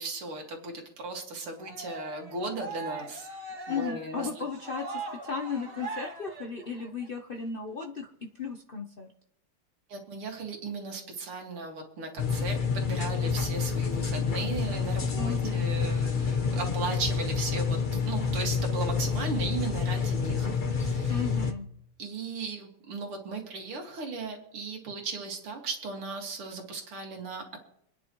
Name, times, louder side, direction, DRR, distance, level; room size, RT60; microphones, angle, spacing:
voice 1, 0.0-3.3 3.7-4.4 9.9-21.2 22.0-27.6, right 3 dB, 90° right, 1 dB, 3.1 m, -36 dB
Cheering, 1.6-7.1, right 2 dB, 40° right, 2.0 m, -40 dB
voice 2, 3.7-9.1 15.2-15.7 21.1-21.7, left 5 dB, 75° left, 2 dB, 0.5 m, -35 dB
sound 1, 12.2-21.5, left 5 dB, 35° left, 0.8 m, -28 dB
27.5 x 10.0 x 3.1 m, 0.72 s
omnidirectional pair, 2.3 m